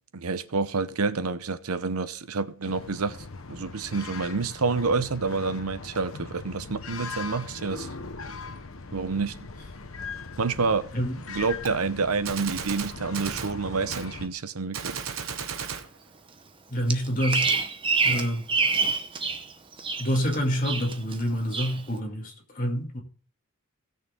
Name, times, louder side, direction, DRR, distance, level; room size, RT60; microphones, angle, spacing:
voice 1, 0.1-3.2 3.5-7.9 8.9-9.4 10.4-10.9 11.3-15.0, right 4 dB, 90° right, 0.8 m, -28 dB
sound 1, 2.6-14.3, left 4 dB, 70° left, 1.1 m, -40 dB
Gunshot gunfire, 11.7-11.8 12.3-13.6 13.9-14.1 14.7-15.9, right 7 dB, 70° right, 1.0 m, -34 dB
voice 2, 16.7-17.5 18.0-18.4 20.0-23.0, equal, 35° left, 2.3 m, -27 dB
Bird vocalization bird call bird song, 16.9-19.4 19.7-20.3 20.6-21.2 21.5-21.8, right 4 dB, 25° right, 0.7 m, -26 dB
16.5 x 6.6 x 3.7 m
head